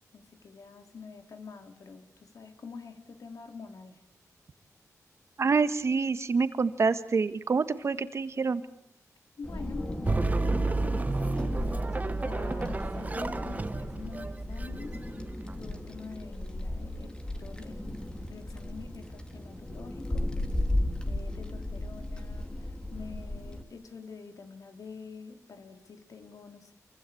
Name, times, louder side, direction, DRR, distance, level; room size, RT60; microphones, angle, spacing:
voice 1, 0.1-4.1 9.4-15.0 15.6-20.3 21.1-26.7, left 4 dB, 70° left, 6 dB, 3.8 m, -46 dB
voice 2, 5.4-8.6, right 4 dB, 50° right, 11 dB, 1.8 m, -27 dB
Wind, 9.4-23.6, left 1 dB, 15° left, 2.7 m, -35 dB
sound 1, 10.1-15.5, right 3 dB, 25° right, 1.2 m, -31 dB
28.0 x 24.0 x 8.7 m, 0.77 s
wide cardioid pair, 110°, 6 cm